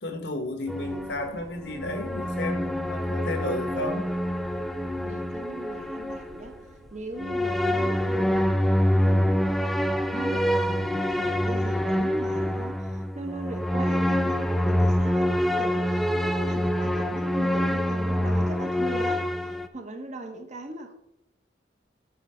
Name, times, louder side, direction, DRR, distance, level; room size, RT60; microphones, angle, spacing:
voice 1, 0.0-4.1, left 1 dB, 70° left, 7 dB, 1.3 m, -32 dB
sound 1, 0.7-6.6 7.2-19.7, equal, ahead, 0.4 m, -26 dB
sound 2, 0.8-12.1, right 1 dB, 80° right, 1.2 m, -52 dB
voice 2, 5.0-6.5 6.9-8.6 9.0-9.7 10.0-19.3 19.7-20.9, right 2 dB, 40° right, 4 dB, 1.2 m, -38 dB
9.0 x 4.1 x 5.6 m, 0.82 s
head